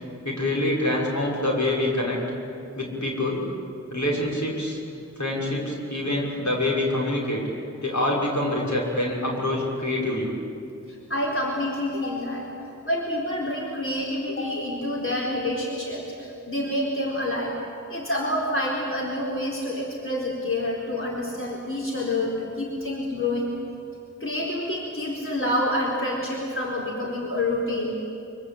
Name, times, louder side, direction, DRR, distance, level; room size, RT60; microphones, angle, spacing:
voice 1, 0.2-2.2 2.8-3.5 3.9-4.8 5.2-7.5 7.8-10.3, left 1 dB, 70° left, -3 dB, 6.2 m, -25 dB
voice 2, 10.9-12.5 12.8-17.6 17.9-23.6 24.2-27.9, left 1 dB, 45° left, -3 dB, 4.3 m, -28 dB
24.0 x 24.0 x 8.8 m, 2.6 s
wide cardioid pair, 45°, 30 cm